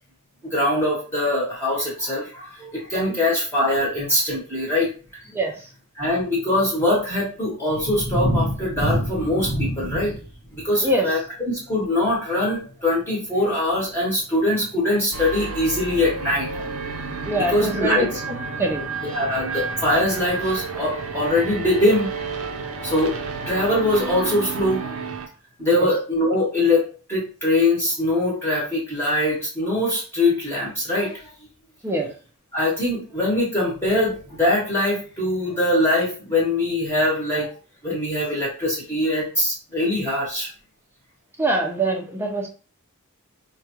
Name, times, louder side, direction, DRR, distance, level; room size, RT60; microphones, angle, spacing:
voice 1, 0.4-5.2 5.9-10.2 10.5-16.7 17.3-18.1 19.0-22.1 22.8-23.2 23.5-24.8 25.6-31.3 32.5-37.5 37.8-40.5, left 1 dB, 10° left, -5 dB, 1.0 m, -22 dB
sound 1, 15.1-25.3, right 4 dB, 80° right, 0.7 m, -31 dB
voice 2, 17.3-18.1 18.6-18.8 25.7-25.9 31.8-32.1 41.4-42.5, right 1 dB, 10° right, 1 dB, 0.6 m, -23 dB
4.8 x 2.2 x 2.9 m, 0.38 s
head